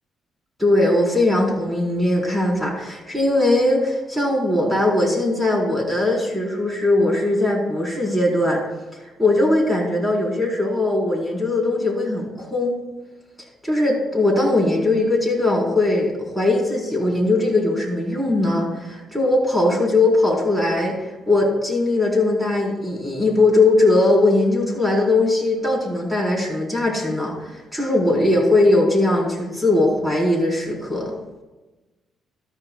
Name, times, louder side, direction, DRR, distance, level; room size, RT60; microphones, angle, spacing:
voice 1, 0.6-8.6 8.9-12.8 13.6-31.1, left 2 dB, 5° right, -2 dB, 4.1 m, -20 dB
13.5 x 13.0 x 2.3 m, 1.1 s
cardioid pair, 90°, 0 cm